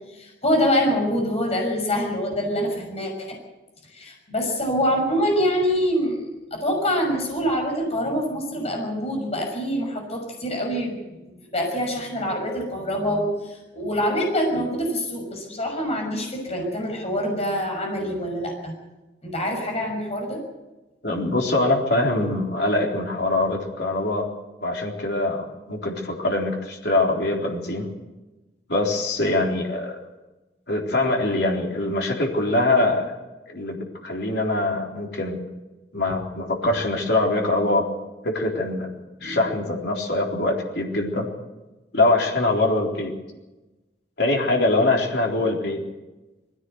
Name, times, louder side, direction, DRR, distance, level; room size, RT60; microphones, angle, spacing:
voice 1, 0.2-3.4 3.9-6.3 6.5-18.7 19.2-20.4 39.2-39.5, equal, 35° left, 1 dB, 6.2 m, -25 dB
voice 2, 21.0-24.3 24.6-27.9 28.7-30.0 30.7-33.1 33.5-35.4 35.9-37.9 38.2-38.9 39.2-41.3 41.9-43.1 44.2-45.8, left 2 dB, 65° left, 0 dB, 3.9 m, -23 dB
21.0 x 16.5 x 8.0 m, 1.1 s
head